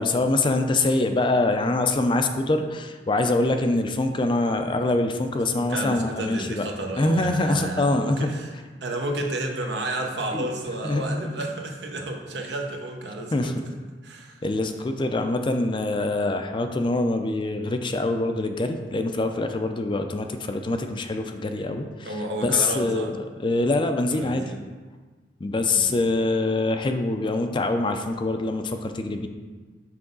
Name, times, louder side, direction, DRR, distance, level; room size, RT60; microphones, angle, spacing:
voice 1, 0.0-6.7 7.0-8.3 10.3-10.5 10.8-11.3 13.3-13.5 14.4-22.1 22.4-23.1 23.4-24.5 25.4-29.3, left 2 dB, 30° left, 6 dB, 0.4 m, -24 dB
voice 2, 5.5-8.5 8.8-13.7 14.0-14.4 22.0-23.2 24.1-24.6 25.7-25.9, right 1 dB, 75° right, 2 dB, 0.9 m, -31 dB
6.0 x 5.6 x 3.9 m, 1.4 s
head